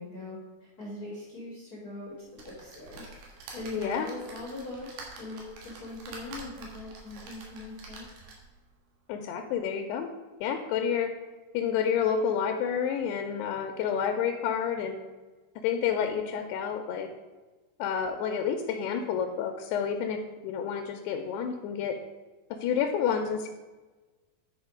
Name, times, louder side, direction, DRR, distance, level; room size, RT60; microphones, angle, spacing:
voice 1, 0.0-4.9 5.2-8.1, left 2 dB, 55° left, -5 dB, 1.0 m, -41 dB
pressing buttons on a joystick, 2.4-8.6 9.1-9.2 9.5-9.6, right 3 dB, 75° right, 3.6 m, -46 dB
voice 2, 3.7-4.1 9.1-10.1 10.4-11.1 11.5-15.0 15.6-17.1 17.8-22.0 22.6-23.5, left 7 dB, 80° left, 5 dB, 2.6 m, -29 dB
10.5 x 4.8 x 5.0 m, 1.2 s
omnidirectional pair, 5.0 m